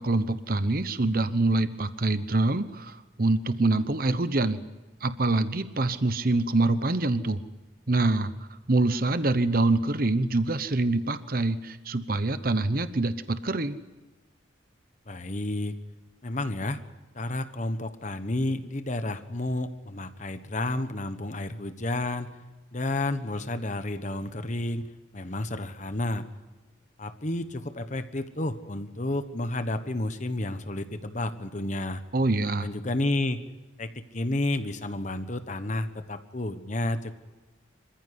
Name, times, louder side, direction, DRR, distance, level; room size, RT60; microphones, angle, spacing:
voice 1, 0.0-4.6 5.0-7.4 7.9-8.3 8.7-13.8 32.1-32.7, right 2 dB, 50° right, 12 dB, 0.9 m, -25 dB
voice 2, 15.1-15.8 16.2-16.8 17.1-22.3 22.7-24.9 25.1-26.3 27.0-32.0 32.6-33.4 33.8-37.2, left 2 dB, 40° left, 10 dB, 1.2 m, -31 dB
26.5 x 15.0 x 9.8 m, 1.2 s
head